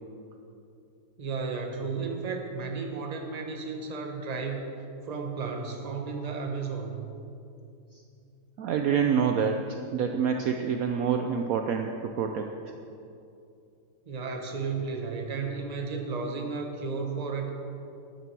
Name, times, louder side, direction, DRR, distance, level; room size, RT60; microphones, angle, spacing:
voice 1, 1.2-4.7 5.0-7.0 14.1-17.5, right 4 dB, 30° right, 3 dB, 0.8 m, -33 dB
voice 2, 8.6-12.7, right 7 dB, 80° right, 4 dB, 0.7 m, -27 dB
12.5 x 9.7 x 4.7 m, 2.6 s
omnidirectional pair, 2.1 m